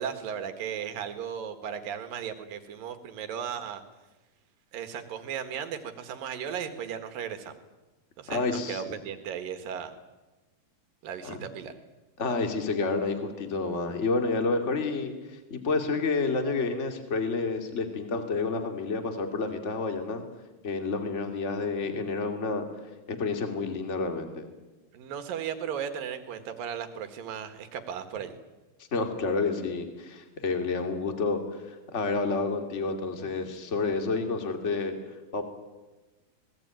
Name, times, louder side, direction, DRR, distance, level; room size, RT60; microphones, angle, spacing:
voice 1, 0.0-3.8 4.7-7.6 8.2-9.9 11.0-11.7 24.9-28.4, right 8 dB, 70° right, 8 dB, 3.4 m, -36 dB
voice 2, 8.3-9.0 11.2-11.4 12.2-20.2 20.6-22.6 23.1-24.5 28.9-35.4, left 3 dB, 20° left, 6 dB, 2.3 m, -29 dB
26.0 x 20.0 x 9.1 m, 1.1 s
omnidirectional pair, 4.2 m